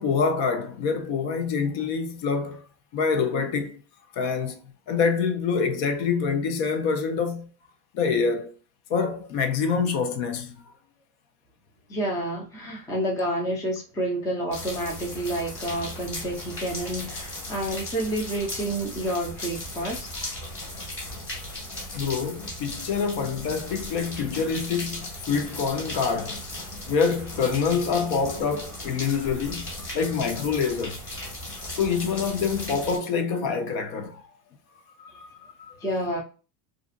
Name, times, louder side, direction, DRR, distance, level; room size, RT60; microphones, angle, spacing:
voice 1, 0.0-2.6 2.9-3.8 4.1-4.6 4.9-7.5 7.9-8.5 8.9-10.6 21.9-26.4 26.9-31.0 31.8-34.2 35.0-35.8, left 5 dB, 50° left, 0.7 m, -26 dB
voice 2, 11.9-20.1 35.8-36.2, right 1 dB, 5° left, 0.4 m, -29 dB
sound 1, 14.5-33.0, left 1 dB, 25° left, 1.5 m, -37 dB
2.5 x 2.4 x 2.5 m
supercardioid pair, 120°, 50 cm